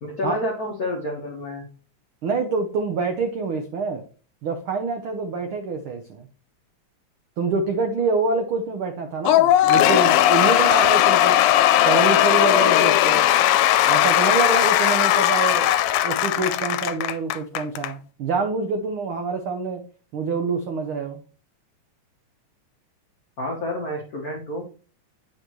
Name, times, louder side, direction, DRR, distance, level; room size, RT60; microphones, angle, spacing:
voice 1, 0.0-1.7 23.4-24.6, left 1 dB, 70° left, -1 dB, 0.8 m, -29 dB
voice 2, 2.2-4.0 4.4-6.3 7.4-11.4 11.8-13.3 13.9-15.7 16.0-19.8 20.1-21.2, right 4 dB, 85° right, 4 dB, 1.1 m, -26 dB
Cheering / Applause / Crowd, 9.2-17.9, left 13 dB, 85° left, 2.0 m, -18 dB
9.0 x 5.1 x 3.0 m, 0.38 s
omnidirectional pair, 3.4 m